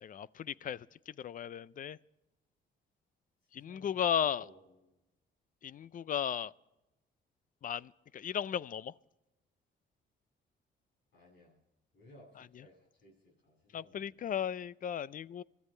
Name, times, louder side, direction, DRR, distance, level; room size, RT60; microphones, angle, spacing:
voice 1, 0.0-2.0 3.5-4.5 5.6-6.5 7.6-8.9 13.7-15.4, left 9 dB, 45° left, 0.4 m, -35 dB
voice 2, 3.5-5.0 11.1-11.6 11.9-14.3, left 1 dB, 65° left, 7.6 m, -60 dB
25.5 x 14.0 x 3.3 m
cardioid pair, 90°, 20 cm